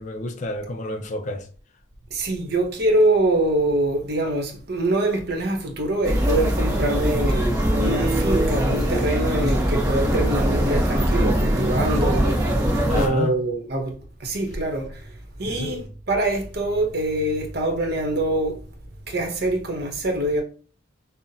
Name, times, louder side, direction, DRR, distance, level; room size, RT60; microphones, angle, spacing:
voice 1, 0.0-1.4 12.8-13.4 15.5-15.8, left 2 dB, 40° left, 0.4 m, -30 dB
voice 2, 2.1-12.4 12.9-13.9 14.2-15.1 15.4-18.6 19.1-20.4, right 1 dB, 55° right, 0.8 m, -24 dB
sound 1, 6.0-13.1, equal, 20° right, 0.8 m, -22 dB
5.5 x 2.0 x 2.7 m
head